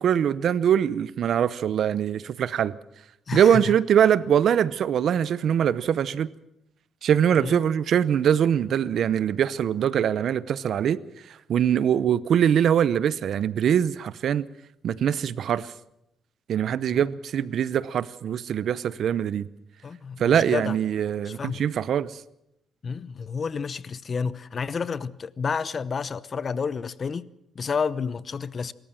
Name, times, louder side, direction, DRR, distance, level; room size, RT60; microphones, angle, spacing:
voice 1, 0.0-2.8 3.3-6.3 7.0-11.0 11.3-14.5 14.8-15.7 16.5-19.5 20.2-22.2, right 9 dB, 65° right, 0.7 m, -23 dB
voice 2, 3.3-3.6 7.4-7.6 19.8-20.8 21.3-21.6 22.8-27.3 27.5-28.7, left 5 dB, 40° left, 0.8 m, -30 dB
25.0 x 14.0 x 7.6 m
cardioid pair, 90°, 0 cm